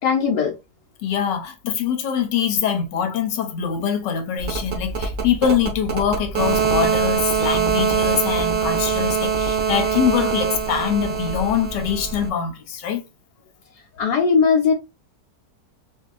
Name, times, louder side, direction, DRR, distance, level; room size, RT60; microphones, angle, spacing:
voice 1, 0.0-0.5 14.0-14.7, left 5 dB, 70° left, 1.3 m, -18 dB
voice 2, 1.0-13.0, left 8 dB, 90° left, 1.5 m, -23 dB
sound 1, 4.4-12.3, right 6 dB, 75° right, 1.6 m, -23 dB
4.1 x 2.7 x 2.5 m
omnidirectional pair, 1.9 m